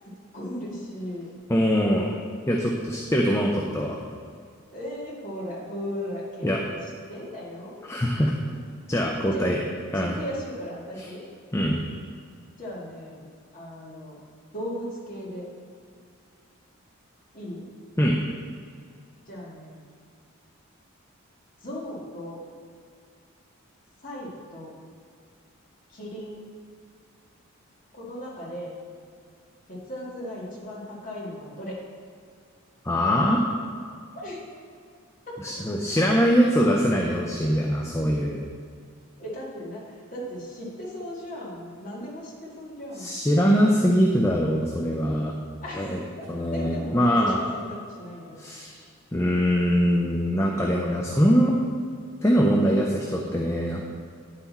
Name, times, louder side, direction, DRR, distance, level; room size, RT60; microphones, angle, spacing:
voice 1, 0.3-1.3 4.7-6.8 7.1-7.9 8.1-8.2 9.3-9.6 9.9-11.2 12.6-13.2 13.5-14.2 14.5-15.5 17.3-17.7 19.3-19.8 21.6-22.4 24.0-24.7 25.9-26.4 27.9-28.8 29.7-31.8 34.1-34.4 35.3-35.4 39.2-39.8 40.1-43.1 45.6-48.5, equal, 40° left, -5 dB, 2.1 m, -37 dB
voice 2, 1.5-2.1 2.5-4.0 6.4-6.6 7.8-8.3 8.9-9.6 9.9-10.2 11.0-11.1 11.5-11.8 18.0-18.2 32.8-33.4 35.4-38.4 43.0-45.3 45.8-46.0 46.3-47.4 48.4-48.8 49.1-51.6 52.2-53.8, equal, 15° left, -1 dB, 0.5 m, -22 dB
9.5 x 5.8 x 4.2 m, 2.2 s
head